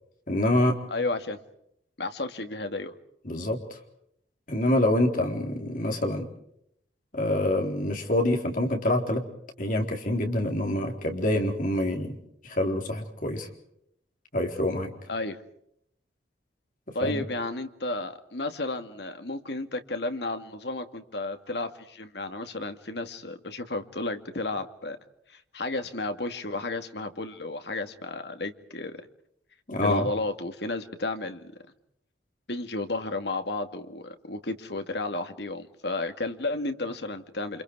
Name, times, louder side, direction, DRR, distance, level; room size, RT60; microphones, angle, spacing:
voice 1, 0.3-0.8 3.2-3.8 4.5-6.3 7.1-9.2 9.6-12.2 12.4-13.5 14.3-14.9 16.9-17.2 29.7-30.1, left 1 dB, 45° left, 2 dB, 4.1 m, -26 dB
voice 2, 0.9-1.4 2.0-2.9 15.1-15.4 16.9-25.0 25.3-29.0 29.8-31.5 32.5-37.6, left 2 dB, 65° left, 7 dB, 2.2 m, -32 dB
29.0 x 27.0 x 4.9 m, 0.74 s
head